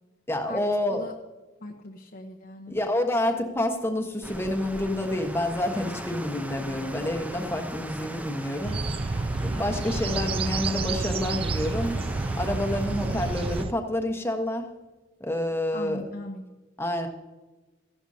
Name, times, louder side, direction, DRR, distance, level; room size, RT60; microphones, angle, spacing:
voice 1, 0.3-1.1 2.7-9.1 9.4-12.0 12.4-14.7 15.2-16.0 16.8-17.1, left 1 dB, 15° left, 3 dB, 1.2 m, -28 dB
voice 2, 1.6-2.8 15.7-16.4, left 2 dB, 50° left, 0 dB, 0.9 m, -39 dB
sound 1, 4.2-13.6, equal, 10° right, 0.7 m, -38 dB
sound 2, 8.6-13.7, right 3 dB, 30° right, 0.4 m, -29 dB
15.5 x 11.5 x 2.8 m, 1.2 s
head